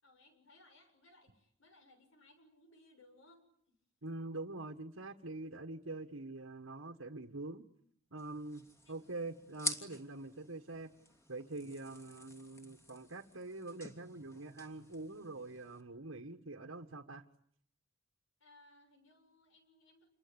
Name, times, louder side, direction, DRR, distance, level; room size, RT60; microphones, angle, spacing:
voice 1, 0.0-3.8 8.9-9.0 18.4-20.1, left 2 dB, 75° left, 7 dB, 6.9 m, -64 dB
voice 2, 4.0-7.7 8.1-10.9 11.3-17.2, right 2 dB, 80° right, 3 dB, 1.7 m, -45 dB
sound 1, 8.2-15.8, equal, 15° left, 2.9 m, -47 dB
28.5 x 22.5 x 8.9 m, 0.66 s
head